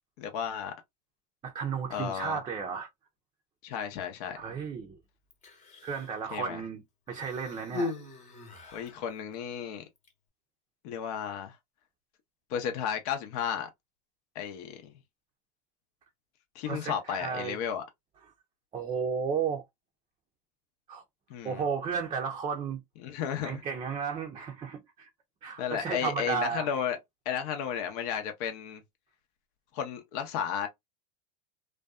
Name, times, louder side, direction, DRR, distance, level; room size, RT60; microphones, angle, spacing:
voice 1, 0.2-0.7 1.9-2.4 3.6-4.4 6.3-6.6 8.7-9.8 10.8-11.5 12.5-13.7 14.3-14.9 16.5-17.8 21.3-21.6 23.0-23.6 25.6-27.0 27.3-28.8 29.7-30.7, left 8 dB, 60° left, 0.7 m, -33 dB
voice 2, 1.4-2.9 4.3-5.0 5.8-6.8 7.1-7.9 16.7-17.6 18.7-19.6 20.9-21.0 21.4-22.8 23.4-25.1 25.4-26.7, right 6 dB, 25° right, 0.5 m, -33 dB
Human voice, 5.3-6.2 7.1-9.0 10.0-10.1, left 3 dB, 35° left, 0.9 m, -38 dB
2.5 x 2.2 x 2.3 m
hypercardioid pair, 110°, 21 cm